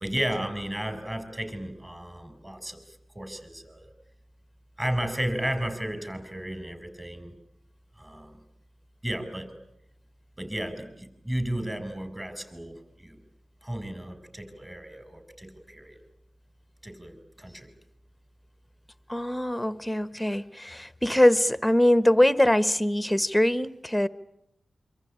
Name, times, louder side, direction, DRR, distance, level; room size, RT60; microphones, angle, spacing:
voice 1, 0.0-3.9 4.8-7.4 8.0-8.4 9.0-9.5 10.4-13.2 13.6-16.0 16.8-17.7, right 1 dB, 20° right, 10 dB, 5.4 m, -34 dB
voice 2, 19.1-24.1, left 1 dB, 5° left, 15 dB, 1.2 m, -22 dB
26.0 x 25.5 x 8.9 m, 0.78 s
wide cardioid pair, 70°, 0 cm